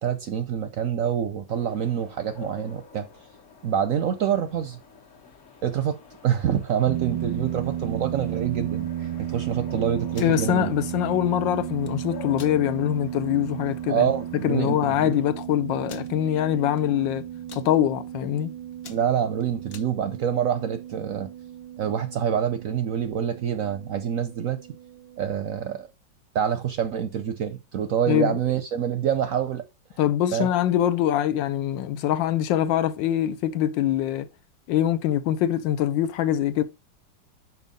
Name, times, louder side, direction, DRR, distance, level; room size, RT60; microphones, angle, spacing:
voice 1, 0.0-3.1 3.6-4.8 5.6-6.0 6.2-10.7 13.9-15.1 18.9-21.3 21.8-24.6 25.2-25.9 26.3-29.6 30.3-30.5, right 8 dB, 65° right, 0.8 m, -26 dB
sound 1, 1.5-15.3, left 6 dB, 45° left, 1.4 m, -48 dB
sound 2, 6.9-25.3, right 11 dB, 90° right, 1.3 m, -34 dB
sound 3, 10.0-10.4 11.6-11.9 12.3-12.6 13.1-13.2 13.5-13.8 14.5-14.6 14.8-14.9 15.9-16.1 16.7-17.0 17.3-17.7 18.2-18.4 18.7-19.9, left 7 dB, 65° left, 0.6 m, -46 dB
voice 2, 10.2-14.1 14.4-17.2 17.5-18.5 28.1-28.4 30.0-34.3 34.7-36.6, left 11 dB, 85° left, 1.4 m, -24 dB
5.6 x 4.7 x 5.2 m
omnidirectional pair, 2.0 m